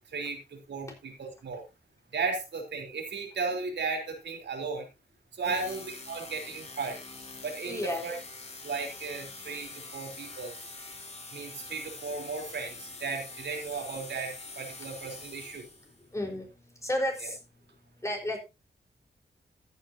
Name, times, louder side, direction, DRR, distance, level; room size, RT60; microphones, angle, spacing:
voice 1, 0.1-1.6 2.1-4.9 5.3-7.0 7.4-8.2 8.6-10.7 11.3-15.7 17.2-17.3, right 4 dB, 85° right, 2 dB, 3.7 m, -35 dB
sound 1, 5.4-16.0, left 3 dB, 35° left, 2.8 m, -45 dB
voice 2, 7.7-8.0 16.1-16.5 16.8-17.4 18.0-18.4, left 1 dB, 15° left, 2 dB, 4.4 m, -32 dB
14.5 x 9.5 x 2.8 m, 0.26 s
wide cardioid pair, 110°, 18 cm